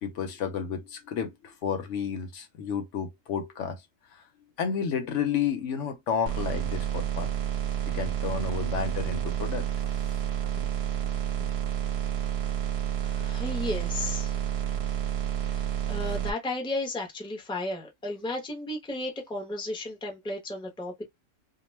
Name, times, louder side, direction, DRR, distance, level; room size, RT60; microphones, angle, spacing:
voice 1, 0.0-3.8 4.1-4.2 4.6-7.3 7.9-9.7 10.6-10.7 11.4-11.5 13.2-13.3, left 7 dB, 70° left, 0.9 m, -31 dB
sound 1, 6.3-16.3, right 10 dB, 60° right, 0.8 m, -30 dB
voice 2, 13.0-14.4 15.5-21.0, left 2 dB, 5° left, 0.6 m, -34 dB
2.3 x 2.3 x 3.1 m
omnidirectional pair, 1.3 m